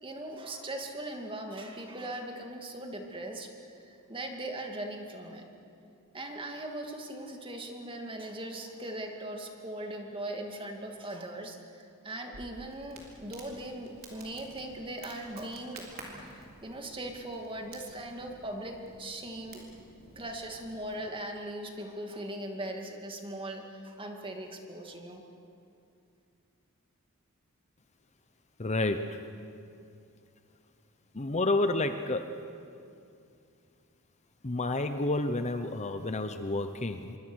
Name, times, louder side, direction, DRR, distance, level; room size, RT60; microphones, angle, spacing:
voice 1, 0.0-5.5 6.1-19.7 20.2-25.2, right 1 dB, 25° right, 3 dB, 2.4 m, -40 dB
Crackle, 12.3-21.0, right 2 dB, 45° right, 4.1 m, -52 dB
voice 2, 28.6-29.2 31.1-32.3 34.4-37.2, left 2 dB, 30° left, 8 dB, 0.8 m, -30 dB
26.5 x 23.5 x 6.4 m, 2.5 s
head